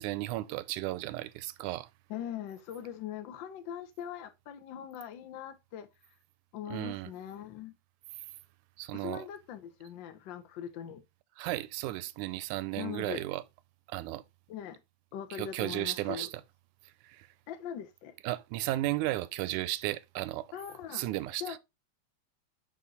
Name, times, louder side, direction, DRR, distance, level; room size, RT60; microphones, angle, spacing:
voice 1, 0.0-1.9 6.7-7.1 8.8-9.3 11.4-13.4 13.9-14.2 15.3-16.4 16.8-17.3 18.2-20.5 20.9-21.6, right 16 dB, 90° right, 2.0 m, -34 dB
voice 2, 2.1-5.9 6.5-7.7 8.9-11.0 12.8-13.2 14.5-14.8 15.1-16.3 17.5-18.1 20.5-21.1 21.4-21.6, left 9 dB, 75° left, 1.0 m, -41 dB
5.7 x 5.4 x 4.0 m
omnidirectional pair, 3.4 m